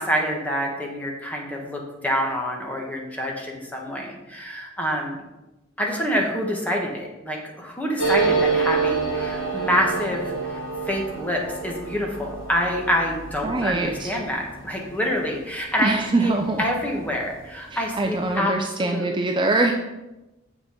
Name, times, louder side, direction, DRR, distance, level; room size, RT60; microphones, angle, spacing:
voice 1, 0.0-5.2 5.8-16.3 16.6-18.5 18.8-19.3, equal, 10° left, -1 dB, 1.5 m, -27 dB
sound 1, 8.0-17.1 17.4-17.5 17.7-18.3, right 4 dB, 85° left, 1.5 m, -28 dB
voice 2, 13.4-14.1 15.8-16.6 17.7-19.7, right 2 dB, 25° right, 4 dB, 0.5 m, -23 dB
7.5 x 6.3 x 5.1 m, 1.0 s
head